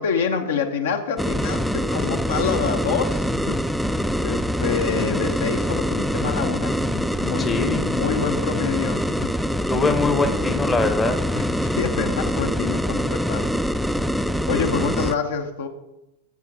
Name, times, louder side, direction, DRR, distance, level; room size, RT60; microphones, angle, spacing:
voice 1, 0.0-3.6 4.2-9.3 11.3-13.5 14.5-15.7, left 6 dB, 60° left, 6 dB, 0.7 m, -27 dB
sound 1, 1.2-15.1, equal, ahead, 0.3 m, -24 dB
voice 2, 7.4-7.8 9.7-11.2 14.7-15.0, left 3 dB, 15° left, 7 dB, 0.8 m, -23 dB
8.4 x 7.2 x 4.7 m, 0.93 s
figure-of-eight pair, 90°, 0 cm